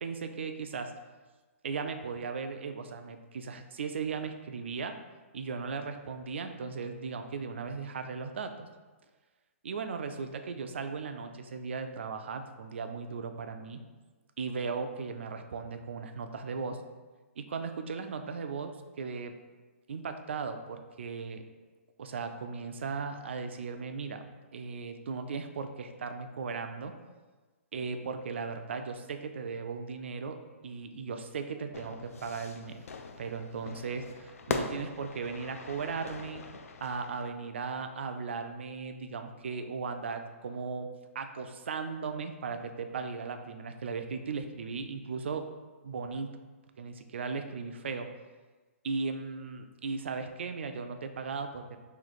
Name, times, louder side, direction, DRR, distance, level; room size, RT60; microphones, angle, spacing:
voice 1, 0.0-0.9 1.6-5.0 5.3-8.7 9.6-13.8 14.4-16.8 17.4-19.4 19.9-21.4 22.0-24.3 24.5-27.0 27.7-30.4 30.6-32.8 33.2-34.1 34.5-36.4 36.8-40.9 41.1-45.5 45.8-46.4 46.8-48.1 48.8-51.8, right 5 dB, 55° right, 7 dB, 0.3 m, -37 dB
Fire / Fireworks, 31.7-37.3, left 4 dB, 80° left, 0.4 m, -40 dB
3.0 x 2.7 x 4.0 m, 1.3 s
hypercardioid pair, 175°, 8 cm